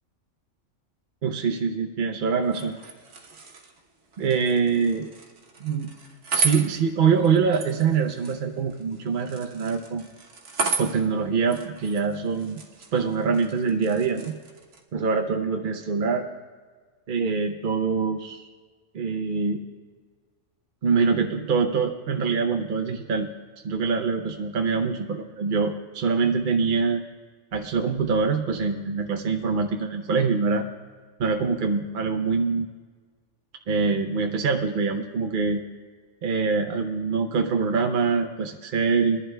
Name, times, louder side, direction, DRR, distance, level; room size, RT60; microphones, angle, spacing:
voice 1, 1.2-2.7 4.2-5.1 5.6-5.9 6.3-10.0 10.8-12.6 12.9-14.3 14.9-16.3 17.1-18.4 18.9-19.6 20.8-23.3 23.6-27.0 27.5-30.7 31.2-32.7 33.7-35.6 36.2-39.2, right 5 dB, 50° right, 4 dB, 0.7 m, -24 dB
sound 1, 2.4-14.8, right 4 dB, 70° right, 1.4 m, -35 dB
22.5 x 11.0 x 2.2 m, 1.5 s
omnidirectional pair, 1.3 m